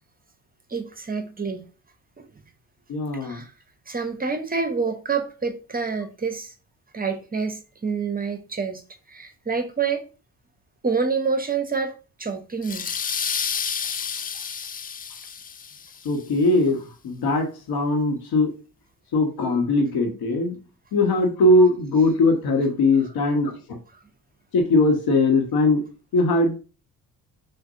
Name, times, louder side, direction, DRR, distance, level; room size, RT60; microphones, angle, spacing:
voice 1, 0.7-1.7 2.2-2.3 3.2-3.5 3.9-6.5 6.9-8.8 9.1-10.0 10.8-12.9, right 5 dB, 20° right, 0.7 m, -27 dB
voice 2, 2.9-3.4 16.0-18.5 19.1-20.6 20.9-23.8 24.5-25.8 26.1-26.6, left 2 dB, 65° left, 1.3 m, -20 dB
sound 1, 12.6-16.1, left 7 dB, 25° left, 0.4 m, -30 dB
6.0 x 2.5 x 2.6 m
hypercardioid pair, 55°, 41 cm